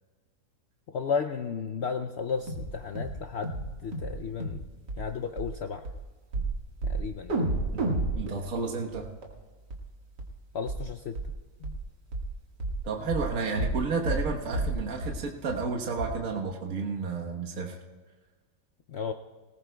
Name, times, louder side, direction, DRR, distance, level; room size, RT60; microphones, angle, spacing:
voice 1, 0.9-4.6 5.0-5.8 6.8-7.5 10.5-11.2 11.6-11.8 18.9-19.1, left 6 dB, 80° left, 6 dB, 0.6 m, -33 dB
sound 1, 2.5-2.7 3.0-3.2 3.4-3.7 3.9-4.2 4.4-4.6 4.9-5.0 5.4-5.5 5.8-6.0 6.3-6.5 6.8-7.0 7.3-9.3 9.7-9.8 10.2-10.3 10.7-10.8 11.2-11.3 11.6-11.8 12.1-12.3 12.6-12.8 13.1-13.3 13.6-13.8 14.0-14.3 14.5-14.8 15.0-15.2 15.5-15.6 16.0-16.1, right 2 dB, 85° right, 2.3 m, -30 dB
voice 2, 8.1-9.1 12.8-17.8, right 4 dB, 55° right, 0 dB, 1.6 m, -31 dB
19.5 x 19.0 x 2.2 m, 1.4 s
omnidirectional pair, 1.8 m